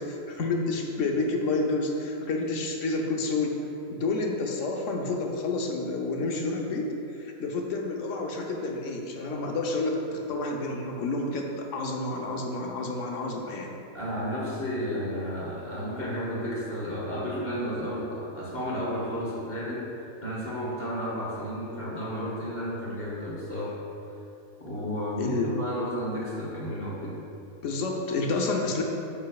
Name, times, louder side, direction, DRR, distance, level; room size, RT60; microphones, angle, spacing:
voice 1, 0.0-3.6 3.9-13.8 25.2-25.5 27.6-28.8, left 3 dB, 65° left, 1 dB, 1.1 m, -29 dB
voice 2, 13.9-19.8 20.2-23.8 24.6-27.1, equal, 40° left, -6 dB, 1.9 m, -32 dB
9.2 x 6.5 x 2.4 m, 2.7 s
omnidirectional pair, 1.5 m